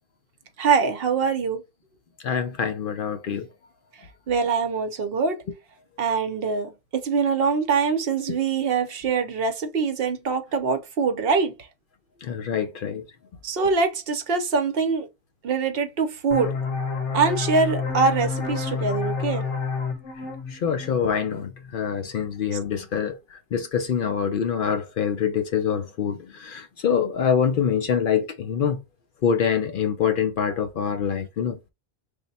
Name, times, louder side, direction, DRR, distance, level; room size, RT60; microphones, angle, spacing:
voice 1, 0.6-1.6 4.3-5.4 6.0-6.7 7.0-11.5 13.4-15.1 15.4-16.5 17.1-19.4, right 5 dB, 65° right, 0.8 m, -23 dB
voice 2, 2.2-3.5 12.2-13.0 20.5-28.8 29.2-31.6, left 7 dB, 60° left, 0.6 m, -25 dB
sound 1, 16.3-21.7, left 5 dB, 85° left, 1.2 m, -29 dB
3.4 x 2.1 x 4.0 m
omnidirectional pair, 1.2 m